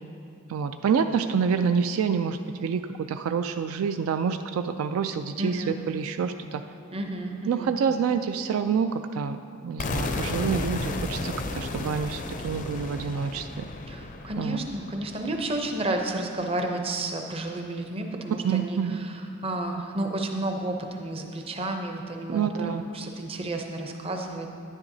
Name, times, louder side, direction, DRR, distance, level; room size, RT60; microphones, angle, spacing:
voice 1, 0.5-6.6 7.5-9.4 9.6-13.6 14.4-14.6 18.4-19.0 22.3-22.9, right 6 dB, 70° right, 8 dB, 0.3 m, -27 dB
voice 2, 5.4-5.8 6.9-7.7 13.9-24.5, right 2 dB, 25° right, 3 dB, 0.6 m, -31 dB
sound 1, 9.8-15.7, left 2 dB, 35° left, 0.4 m, -33 dB
10.0 x 9.9 x 2.7 m, 2.5 s
head